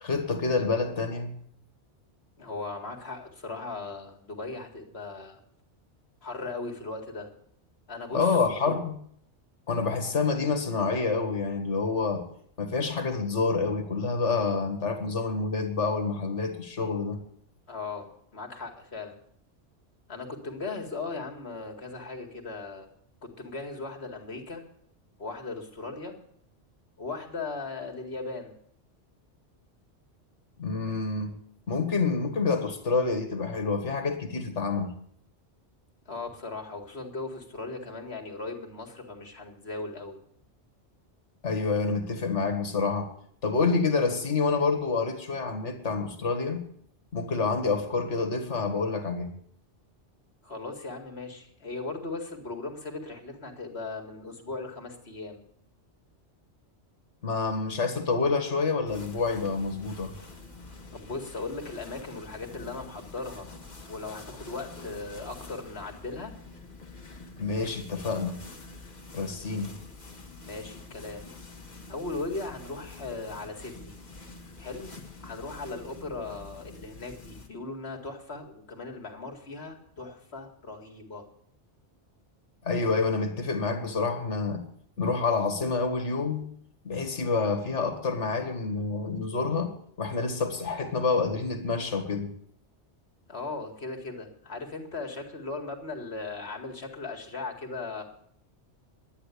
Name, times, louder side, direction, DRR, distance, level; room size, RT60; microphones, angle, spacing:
voice 1, 0.0-1.4 8.1-9.0 9.7-12.2 12.6-17.2 30.6-31.3 31.7-34.9 41.4-43.1 43.4-46.6 47.1-49.3 57.2-60.1 67.4-68.4 69.1-69.7 82.6-84.6 85.0-86.5 86.8-89.7 90.0-92.3, left 4 dB, 80° left, 6 dB, 2.1 m, -28 dB
voice 2, 2.4-5.4 6.2-7.3 7.9-8.7 17.7-19.2 20.1-22.9 23.2-24.6 25.2-26.2 27.0-28.5 36.1-40.2 50.4-55.4 60.9-63.5 63.9-66.3 70.4-71.3 71.9-74.0 74.6-74.9 75.2-81.3 93.3-98.0, left 3 dB, 65° left, 3 dB, 2.3 m, -38 dB
sound 1, 58.9-77.5, left 3 dB, 40° left, 1.6 m, -46 dB
11.0 x 9.8 x 8.3 m, 0.65 s
omnidirectional pair, 1.2 m